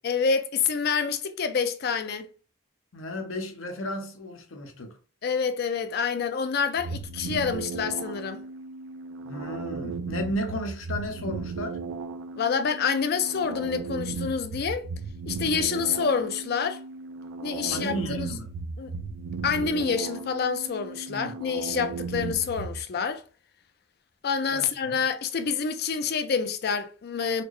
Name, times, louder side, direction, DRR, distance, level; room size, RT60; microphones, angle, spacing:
voice 1, 0.0-2.3 5.2-8.4 12.3-14.9 15.3-16.8 17.4-18.3 18.8-18.9 19.4-23.2 24.2-27.4, left 6 dB, 50° left, 0.4 m, -27 dB
voice 2, 2.9-5.0 9.2-11.8 17.7-18.5 21.1-21.4 24.5-25.0, equal, 75° left, 0.8 m, -34 dB
sound 1, 6.8-22.8, right 4 dB, 70° right, 0.3 m, -36 dB
4.2 x 2.0 x 2.9 m
head